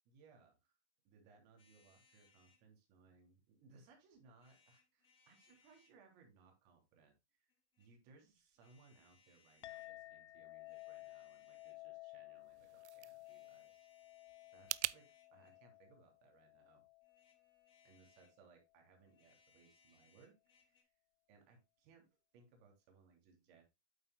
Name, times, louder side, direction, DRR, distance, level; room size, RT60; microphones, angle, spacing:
voice 1, 0.0-0.8 1.0-7.5 7.8-13.9 14.5-16.8 17.8-20.9 21.3-23.6, right 4 dB, 30° right, 3 dB, 3.1 m, -67 dB
sound 1, 1.6-2.6 4.3-6.0 7.5-7.9 8.6-9.9 10.5-11.9 13.2-15.7 17.0-18.4 19.1-20.8, left 5 dB, 15° left, 1.7 m, -72 dB
Chink clink, 9.6-18.3, left 18 dB, 80° left, 0.7 m, -56 dB
sound 2, 12.4-15.0, right 14 dB, 75° right, 0.5 m, -44 dB
8.8 x 8.0 x 2.2 m, 0.23 s
hypercardioid pair, 160°, 34 cm